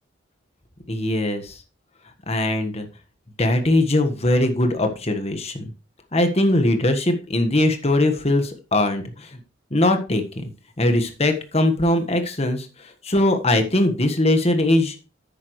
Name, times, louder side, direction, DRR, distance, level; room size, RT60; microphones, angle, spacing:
voice 1, 0.9-1.6 2.3-2.8 3.4-5.7 6.1-9.4 9.7-10.4 10.8-15.0, left 1 dB, 30° left, 7 dB, 1.4 m, -21 dB
10.5 x 8.6 x 3.2 m, 0.33 s
head